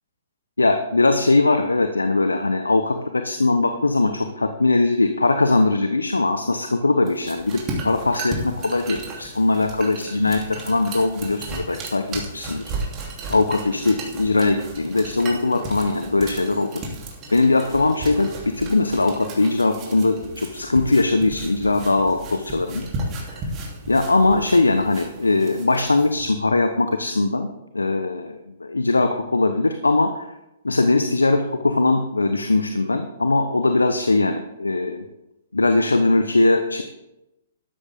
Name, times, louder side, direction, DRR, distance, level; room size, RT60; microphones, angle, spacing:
voice 1, 0.6-12.6 13.3-16.8 17.3-22.9 23.9-27.5 27.7-30.3 30.6-35.0 35.5-36.8, left 2 dB, 85° left, 8 dB, 0.9 m, -20 dB
sound 1, 7.0-26.2, right 2 dB, 30° right, 3.2 m, -35 dB
13.0 x 12.5 x 3.6 m, 0.92 s
figure-of-eight pair, 115°, 0 cm